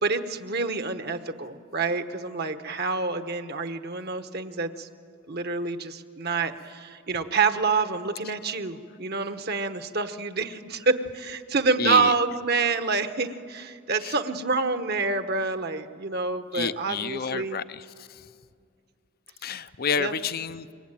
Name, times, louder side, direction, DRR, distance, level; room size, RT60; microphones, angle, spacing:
voice 1, 0.0-4.9 5.3-17.6 20.0-20.1, right 4 dB, 45° right, 9 dB, 1.2 m, -27 dB
voice 2, 11.8-12.1 14.0-14.2 16.5-18.2 19.4-20.7, left 6 dB, 45° left, 13 dB, 0.6 m, -30 dB
27.0 x 23.5 x 9.0 m, 2.3 s
head